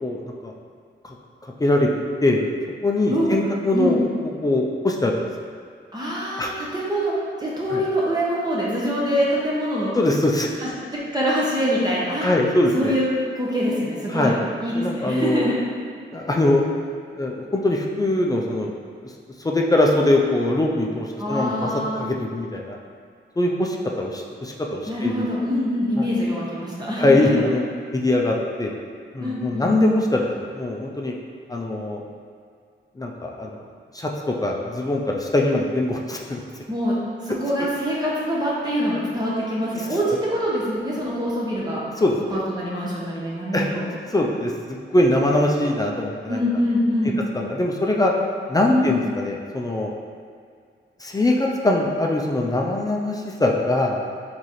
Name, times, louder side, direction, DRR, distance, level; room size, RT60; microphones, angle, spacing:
voice 1, 0.0-0.5 1.0-1.1 1.6-1.9 2.2-2.4 2.8-5.2 6.4-6.5 7.7-7.8 10.0-10.5 12.2-12.9 14.1-14.4 14.8-15.5 16.1-16.6 17.1-18.7 19.4-21.7 22.0-22.8 23.4-25.3 26.0-26.1 27.0-27.6 27.9-28.7 29.1-31.1 31.5-32.0 33.0-33.6 33.9-36.4 39.8-39.9 42.0-42.4 43.5-43.7 44.1-46.4 47.3-48.1 48.5-49.9 51.0-54.0, left 1 dB, 20° left, -1 dB, 0.4 m, -22 dB
voice 2, 3.1-4.0 5.9-9.9 10.6-10.7 11.1-12.3 12.7-13.1 13.4-15.6 21.2-22.0 24.9-27.4 29.2-29.8 36.7-37.0 37.2-41.8 42.3-43.9 46.3-47.2 48.7-49.0, equal, 20° right, -7 dB, 0.8 m, -24 dB
3.7 x 3.1 x 4.1 m, 2.1 s
cardioid pair, 95°, 20 cm